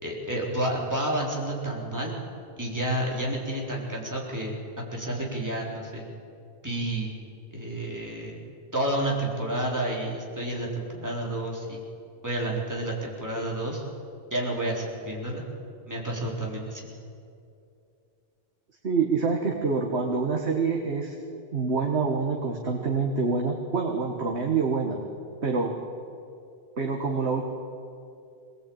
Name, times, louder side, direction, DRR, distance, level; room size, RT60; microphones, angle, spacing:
voice 1, 0.0-2.1 2.6-6.1 6.6-7.1 7.5-8.4 8.7-11.8 12.2-13.8 14.3-15.4 15.9-16.9, right 1 dB, 15° right, -3 dB, 4.1 m, -30 dB
voice 2, 18.8-21.2 21.5-25.0 25.4-25.7 26.8-27.4, right 4 dB, 80° right, 1 dB, 1.9 m, -26 dB
23.0 x 19.0 x 8.8 m, 2.5 s
omnidirectional pair, 1.1 m